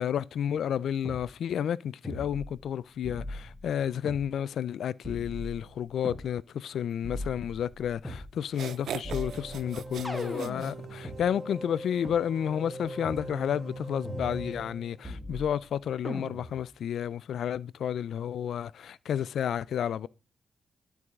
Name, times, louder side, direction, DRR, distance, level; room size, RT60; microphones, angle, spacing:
voice 1, 0.0-20.1, left 9 dB, 80° left, 0.3 m, -31 dB
sound 1, 1.0-1.2 2.0-2.7 3.0-4.2 5.0-6.3 7.0-8.3 9.0-11.2 12.0-12.1 13.0-13.3 14.0-14.7 15.0-15.7 16.0-16.7, left 1 dB, 5° left, 2.1 m, -40 dB
sound 2, 7.9-8.0 8.5-11.3, right 9 dB, 80° right, 0.3 m, -40 dB
sound 3, 9.1-15.2, right 2 dB, 55° right, 1.6 m, -41 dB
12.0 x 4.7 x 3.6 m
cardioid pair, 75°, 0 cm